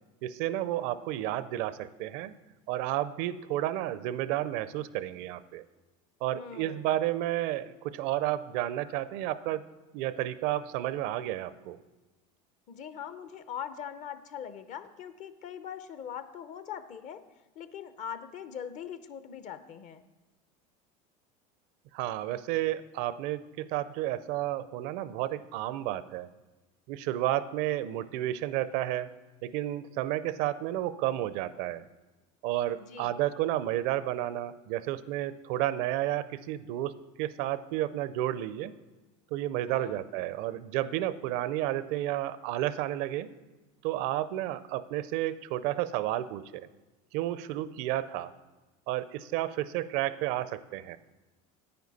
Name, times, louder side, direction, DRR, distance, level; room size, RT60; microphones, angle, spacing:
voice 1, 0.2-2.3 2.7-5.6 6.2-9.6 9.9-11.8 21.9-26.3 26.9-29.1 29.4-31.8 32.4-38.7 39.3-43.3 43.8-46.7 47.1-48.3 48.9-51.0, right 14 dB, 65° right, 15 dB, 0.5 m, -31 dB
voice 2, 6.3-6.9 12.7-17.2 17.6-20.0 32.8-33.2 39.7-40.0, left 8 dB, 45° left, 12 dB, 0.7 m, -42 dB
9.5 x 9.2 x 4.1 m, 1.1 s
supercardioid pair, 115°, 17 cm